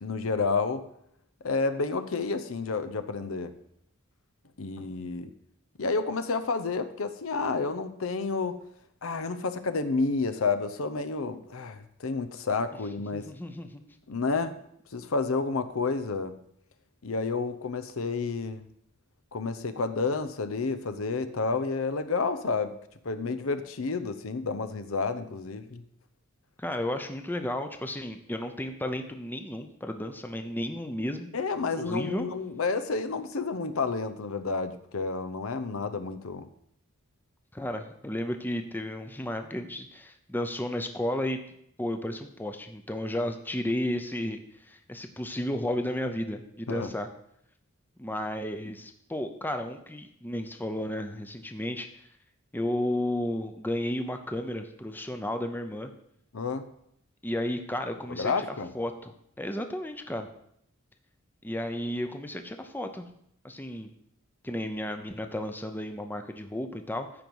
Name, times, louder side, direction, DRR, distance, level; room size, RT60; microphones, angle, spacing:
voice 1, 0.0-0.9 1.4-3.5 4.6-5.3 5.8-8.6 9.0-13.3 14.1-14.5 14.9-16.4 17.0-18.6 19.3-22.7 23.0-25.8 31.3-36.5 46.7-46.9 56.3-56.7 58.1-58.7, left 4 dB, 75° left, 11 dB, 0.7 m, -30 dB
voice 2, 13.1-13.8 26.6-31.3 31.8-32.3 37.5-41.4 41.8-47.1 48.0-51.9 52.5-55.9 57.2-59.1 59.4-60.3 61.4-63.1 63.4-63.9 64.4-67.1, left 1 dB, 10° left, 7 dB, 0.7 m, -33 dB
14.5 x 5.3 x 4.7 m, 0.72 s
head